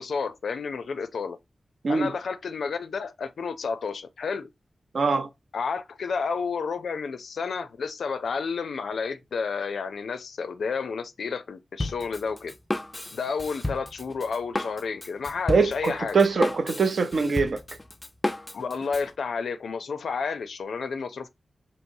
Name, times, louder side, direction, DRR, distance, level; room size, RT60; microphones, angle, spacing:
voice 1, 0.0-1.4 1.9-4.5 5.5-12.5 13.1-16.2 18.5-21.3, left 5 dB, 90° left, 0.4 m, -31 dB
voice 2, 4.9-5.3 15.5-17.6, right 4 dB, 65° right, 0.6 m, -23 dB
Drum kit, 11.8-19.1, left 2 dB, 20° left, 0.4 m, -33 dB
4.6 x 2.9 x 2.6 m
wide cardioid pair, 105°, 0 cm